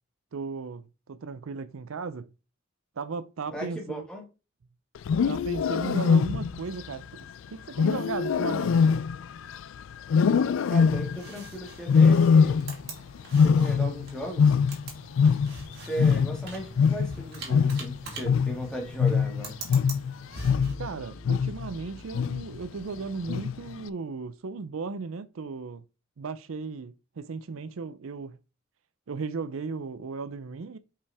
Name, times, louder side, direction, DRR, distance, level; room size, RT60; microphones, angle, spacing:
voice 1, 0.3-2.3 3.0-4.1 5.3-7.1 7.5-8.9 20.8-25.8 26.2-28.4 29.1-30.8, right 4 dB, 80° right, 0.5 m, -36 dB
voice 2, 3.5-4.2 10.7-12.7 13.4-14.6 15.8-19.6, right 1 dB, 5° left, 1.9 m, -37 dB
Wild animals, 5.0-6.7 7.8-9.6 10.1-11.3 11.9-12.9 13.2-15.7 16.0-20.9 21.2-21.7 22.1-22.6 23.3-23.7, left 6 dB, 70° left, 0.3 m, -22 dB
sound 1, 10.8-20.7, right 3 dB, 50° right, 2.1 m, -44 dB
Bowed string instrument, 20.4-23.4, left 1 dB, 55° left, 1.5 m, -42 dB
5.4 x 5.1 x 3.5 m
head